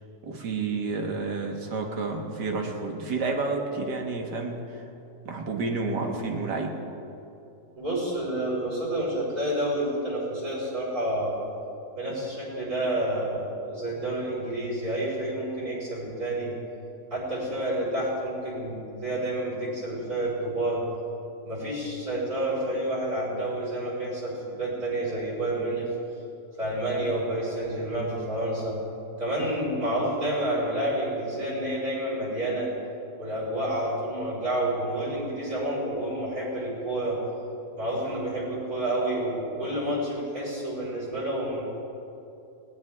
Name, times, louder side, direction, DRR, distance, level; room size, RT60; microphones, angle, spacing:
voice 1, 0.2-4.8 5.3-6.8, right 3 dB, 85° right, 2 dB, 2.2 m, -30 dB
voice 2, 7.8-11.3 11.9-16.5 17.1-20.8 21.4-25.9 26.6-28.8 29.2-32.7 33.2-37.2 37.8-41.6, right 1 dB, 60° right, -7 dB, 4.9 m, -29 dB
20.5 x 18.5 x 3.6 m, 2.8 s
omnidirectional pair, 1.8 m